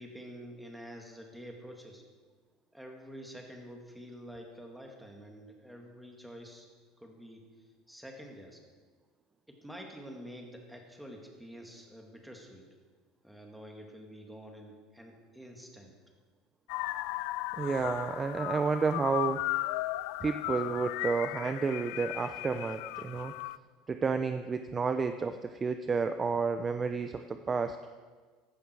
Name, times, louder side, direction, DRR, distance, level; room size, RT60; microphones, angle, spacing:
voice 1, 0.0-2.0 2.7-6.7 7.0-7.4 7.9-8.6 9.5-12.7 13.2-15.9, equal, ahead, 1 dB, 2.4 m, -48 dB
sound 1, 16.7-23.6, left 18 dB, 70° left, 0.4 m, -36 dB
voice 2, 17.6-19.4 20.2-23.3 23.9-27.8, right 4 dB, 20° right, 9 dB, 0.6 m, -31 dB
15.0 x 12.0 x 4.7 m, 1.5 s
supercardioid pair, 125°, 0 cm